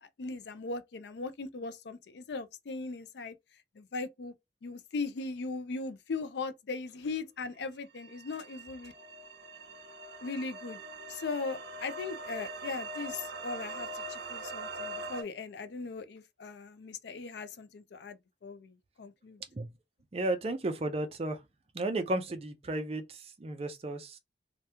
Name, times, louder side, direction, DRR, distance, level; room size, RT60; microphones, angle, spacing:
voice 1, 0.0-3.3 3.8-4.3 4.6-8.9 10.2-10.8 11.1-19.4, left 4 dB, 70° left, 0.4 m, -39 dB
sound 1, 7.9-15.2, right 2 dB, 65° right, 0.7 m, -42 dB
voice 2, 20.1-21.4 21.7-24.2, right 2 dB, 35° right, 0.4 m, -33 dB
2.9 x 2.2 x 3.3 m
head